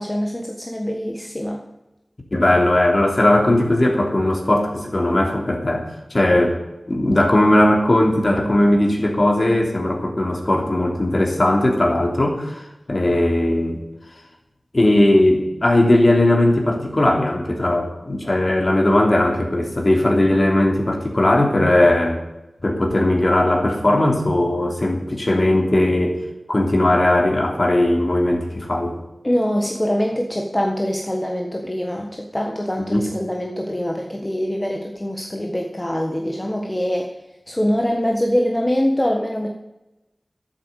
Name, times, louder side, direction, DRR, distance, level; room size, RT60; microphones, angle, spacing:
voice 1, 0.0-1.6 29.2-37.1 37.5-39.5, equal, 20° left, 1 dB, 1.5 m, -23 dB
voice 2, 2.3-6.6 6.9-13.8 14.7-22.2 22.6-26.2 26.5-29.0 32.9-33.0, left 1 dB, 45° left, 1 dB, 3.0 m, -18 dB
12.0 x 8.8 x 8.2 m, 0.98 s
wide cardioid pair, 65°, 0 cm